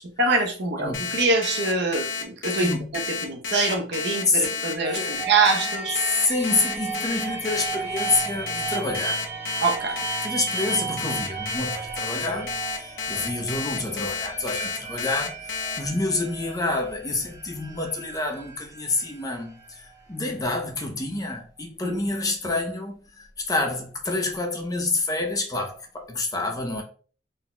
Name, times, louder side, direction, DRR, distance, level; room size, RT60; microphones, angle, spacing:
voice 1, 0.2-6.0 9.6-10.0 21.8-22.0, right 3 dB, 65° right, 0.8 m, -24 dB
voice 2, 0.8-1.1 2.6-2.9 4.3-4.5 4.8-5.1 6.0-9.3 10.2-26.8, left 2 dB, 20° left, 0.7 m, -28 dB
Alarm, 0.9-15.8, left 6 dB, 90° left, 0.8 m, -31 dB
sound 1, 4.8-20.5, right 5 dB, 15° right, 1.3 m, -35 dB
4.0 x 3.9 x 2.2 m
head